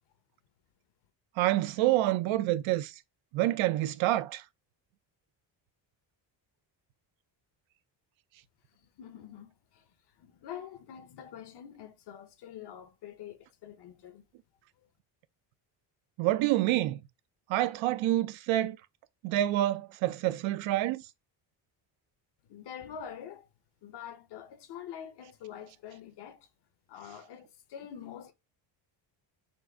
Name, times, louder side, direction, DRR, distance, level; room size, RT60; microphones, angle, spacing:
voice 1, 1.4-2.9 3.3-4.4 16.2-17.0 17.5-18.8 19.2-21.0, right 15 dB, 80° right, 0.6 m, -27 dB
voice 2, 8.8-9.9 10.2-14.2 22.5-23.5 23.8-26.5 26.9-28.3, left 9 dB, 60° left, 1.0 m, -45 dB
4.4 x 2.6 x 4.6 m
cardioid pair, 135°, 46 cm